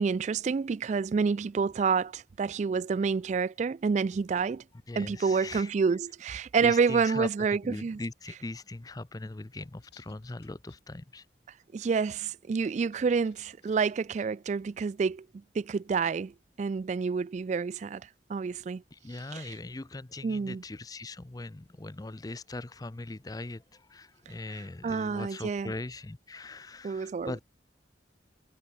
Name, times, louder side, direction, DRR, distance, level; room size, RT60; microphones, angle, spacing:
voice 1, 0.0-4.6 5.0-8.0 11.7-15.3 15.5-16.3 16.6-18.8 19.3-19.5 20.2-20.6 24.3-25.7 26.8-27.4, right 5 dB, 40° right, 0.3 m, -28 dB
voice 2, 4.9-5.7 6.6-11.3 18.9-27.4, left 2 dB, 20° left, 0.5 m, -40 dB
sound 1, 9.6-10.8 12.7-14.3, left 6 dB, 65° left, 2.3 m, -60 dB
head